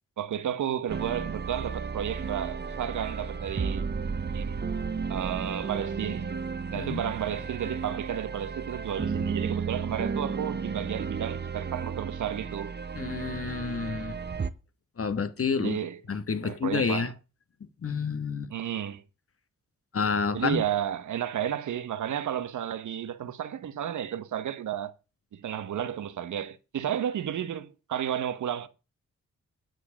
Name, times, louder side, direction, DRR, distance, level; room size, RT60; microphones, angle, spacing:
voice 1, 0.2-3.9 4.3-4.5 5.1-6.3 6.7-12.7 15.6-16.2 16.4-17.1 18.5-19.0 20.3-24.9 25.3-28.7, right 10 dB, 75° right, 1.0 m, -32 dB
sound 1, 0.9-14.5, right 5 dB, 35° right, 0.9 m, -33 dB
voice 2, 12.9-14.2 15.0-15.8 16.1-17.1 17.8-18.5 19.9-20.6, left 5 dB, 50° left, 1.3 m, -29 dB
9.4 x 4.7 x 7.0 m
supercardioid pair, 45°, 30 cm